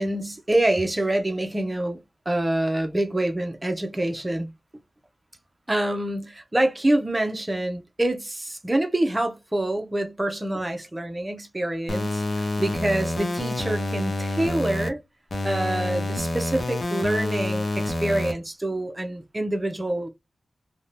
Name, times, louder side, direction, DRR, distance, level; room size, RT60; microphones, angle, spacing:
voice 1, 0.0-2.0 2.3-4.5 5.7-15.0 15.4-20.1, right 1 dB, 20° right, 0.5 m, -26 dB
sound 1, 11.9-14.9 15.3-18.3, left 1 dB, 45° left, 0.6 m, -27 dB
2.6 x 2.1 x 3.1 m
wide cardioid pair, 125°, 0 cm